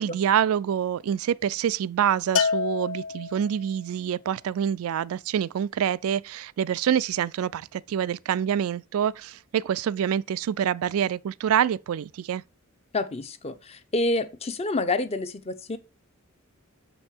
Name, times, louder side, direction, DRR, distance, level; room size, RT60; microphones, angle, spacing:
voice 1, 0.0-12.4, right 9 dB, 90° right, 0.3 m, -26 dB
Bell, 2.4-3.7, left 5 dB, 65° left, 0.6 m, -27 dB
voice 2, 12.9-15.8, left 2 dB, 30° left, 0.7 m, -28 dB
7.3 x 5.4 x 4.4 m
head